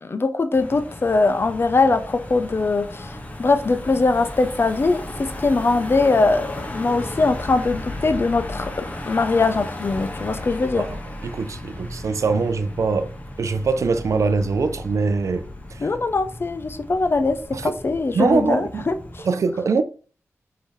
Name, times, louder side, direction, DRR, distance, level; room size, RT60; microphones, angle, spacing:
voice 1, 0.0-3.1 3.4-10.9 15.8-19.3, left 3 dB, 45° left, 0.5 m, -21 dB
Car passing by / Engine, 0.5-19.2, left 1 dB, 25° left, 0.9 m, -35 dB
voice 2, 11.2-13.1 13.4-15.8 17.5-17.7 18.1-18.9 19.2-19.8, right 4 dB, 65° right, 0.4 m, -22 dB
4.5 x 2.8 x 3.7 m
cardioid pair, 60°, 5 cm